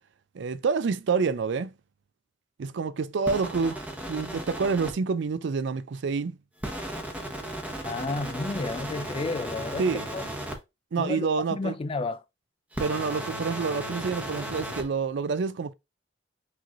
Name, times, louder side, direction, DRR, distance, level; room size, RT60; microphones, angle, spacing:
voice 1, 0.3-1.7 2.6-3.8 4.1-6.4 9.8-10.0 10.9-11.8 12.8-15.7, right 5 dB, 70° right, 0.4 m, -28 dB
sound 1, 3.3-4.9 6.6-10.6 12.7-14.8, right 1 dB, 10° right, 1.0 m, -35 dB
voice 2, 7.8-9.9 10.1-10.2 11.0-12.2, left 3 dB, 30° left, 0.4 m, -31 dB
6.1 x 3.1 x 2.5 m
head